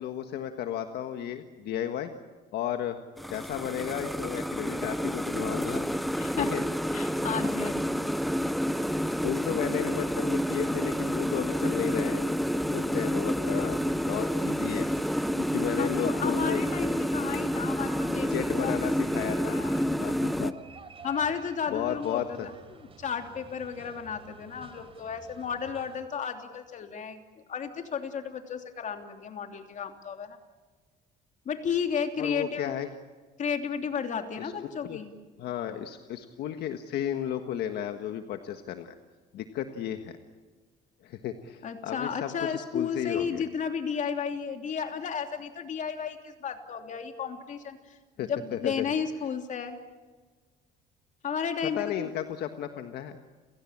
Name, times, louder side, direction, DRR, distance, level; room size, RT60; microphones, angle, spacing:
voice 1, 0.0-2.1 2.5-5.9 6.4-6.6 9.2-14.9 15.4-16.6 18.3-19.6 20.0-20.5 21.7-22.5 32.2-32.9 34.4-34.5 34.8-35.0 35.4-38.9 39.3-40.2 41.0-43.4 48.2-48.9 51.7-53.2, left 10 dB, 75° left, 7 dB, 1.5 m, -34 dB
sound 1, 3.2-20.5, equal, ahead, 0.8 m, -29 dB
voice 2, 6.2-6.5 6.9-8.1 9.5-9.7 15.8-18.7 19.4-19.9 21.0-27.2 27.5-30.4 31.4-32.7 33.4-35.1 41.6-49.8 51.2-52.1, left 6 dB, 50° left, 5 dB, 3.1 m, -33 dB
sound 2, 13.4-26.0, right 4 dB, 35° right, 4.1 m, -51 dB
29.5 x 17.0 x 8.7 m, 1.4 s
cardioid pair, 110°, 17 cm